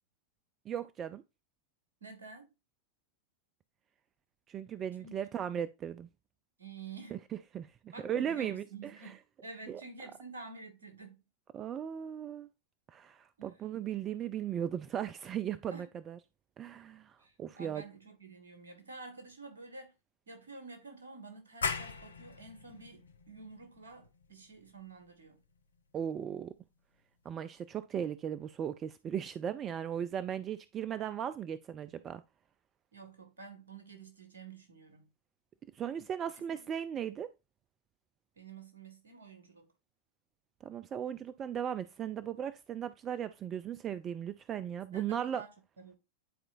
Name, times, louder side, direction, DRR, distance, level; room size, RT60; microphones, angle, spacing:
voice 1, 0.7-1.2 4.5-6.1 7.1-7.2 7.5-9.1 9.7-10.1 11.5-12.5 12.9-16.2 16.6-17.8 25.9-26.5 27.3-32.2 35.7-37.3 40.6-45.4, right 9 dB, 25° right, 0.3 m, -37 dB
voice 2, 2.0-2.5 5.0-5.2 6.6-7.1 7.9-9.2 9.4-11.2 13.4-13.5 15.7-15.9 17.2-19.9 20.3-25.4 32.9-35.1 36.5-36.7 38.4-39.7 44.9-45.5 45.8-46.0, right 4 dB, 70° right, 1.7 m, -49 dB
sound 1, 21.6-27.0, left 5 dB, 75° left, 0.6 m, -42 dB
10.0 x 4.3 x 2.5 m
figure-of-eight pair, 90°, 0 cm